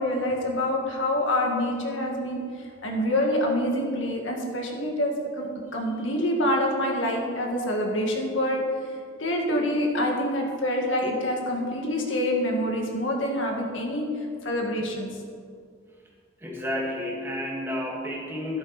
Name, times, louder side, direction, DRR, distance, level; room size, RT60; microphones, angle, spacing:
voice 1, 0.0-2.4 2.8-8.6 9.2-14.1 14.4-15.1, left 1 dB, 90° left, 0 dB, 2.1 m, -26 dB
voice 2, 16.4-18.6, left 1 dB, 10° right, -2 dB, 1.9 m, -31 dB
13.0 x 11.0 x 4.4 m, 2.1 s
head